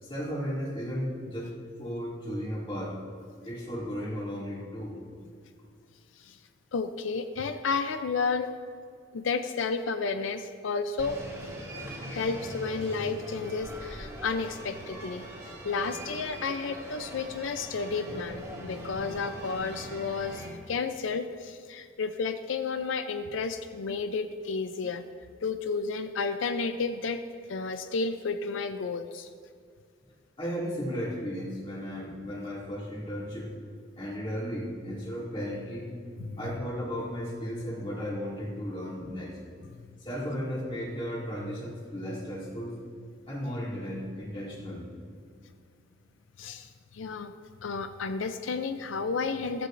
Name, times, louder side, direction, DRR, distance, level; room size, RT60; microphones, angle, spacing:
voice 1, 0.0-1.5 1.8-3.0 3.4-5.0 30.4-33.5 34.0-36.0 36.4-39.4 40.0-42.8 43.3-44.8, equal, 30° left, -4 dB, 2.4 m, -35 dB
voice 2, 6.7-8.5 9.1-11.2 12.1-25.0 25.4-27.2 27.5-29.3 36.2-36.4 39.7-39.8 46.4-47.3 47.6-49.7, left 4 dB, 90° left, 9 dB, 0.5 m, -32 dB
sound 1, 11.0-20.5, right 1 dB, 20° right, 2.6 m, -41 dB
14.5 x 13.0 x 2.6 m, 2.2 s
head